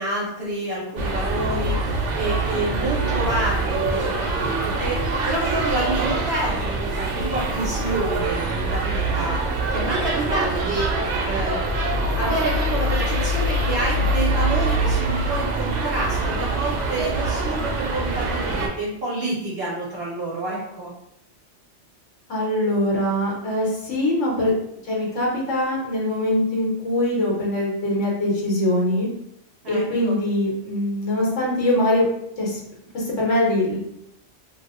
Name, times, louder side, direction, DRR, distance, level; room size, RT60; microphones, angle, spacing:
voice 1, 0.0-10.9 11.2-11.6 12.2-20.9 29.6-30.2, right 2 dB, 60° right, -7 dB, 1.0 m, -28 dB
sound 1, 1.0-18.7, right 2 dB, 90° right, 0.9 m, -24 dB
voice 2, 22.3-24.5 24.9-29.1 29.7-32.0 32.4-32.6 32.9-33.8, left 1 dB, 85° left, -3 dB, 1.3 m, -22 dB
2.8 x 2.1 x 3.5 m, 0.78 s
omnidirectional pair, 1.2 m